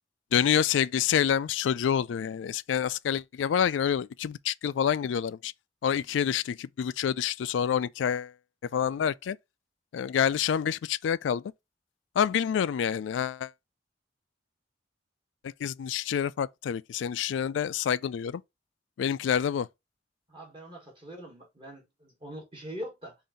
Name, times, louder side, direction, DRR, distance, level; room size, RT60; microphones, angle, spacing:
voice 1, 0.3-5.5 5.8-8.3 8.7-9.4 9.9-11.4 12.2-13.5 15.4-18.4 19.0-19.7, left 8 dB, 85° left, 0.3 m, -27 dB
voice 2, 20.3-23.1, equal, 25° right, 1.4 m, -42 dB
5.5 x 2.6 x 3.7 m
head